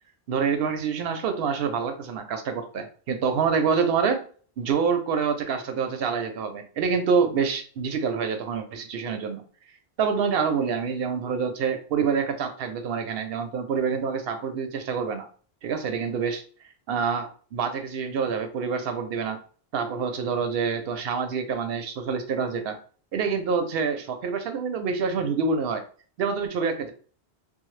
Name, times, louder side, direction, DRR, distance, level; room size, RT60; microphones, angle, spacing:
voice 1, 0.3-4.3 4.6-9.4 10.0-15.3 15.6-16.4 16.9-19.4 19.7-22.8 23.1-25.8 26.2-26.9, right 6 dB, 70° right, 6 dB, 0.8 m, -26 dB
2.7 x 2.1 x 3.1 m, 0.43 s
omnidirectional pair, 1.1 m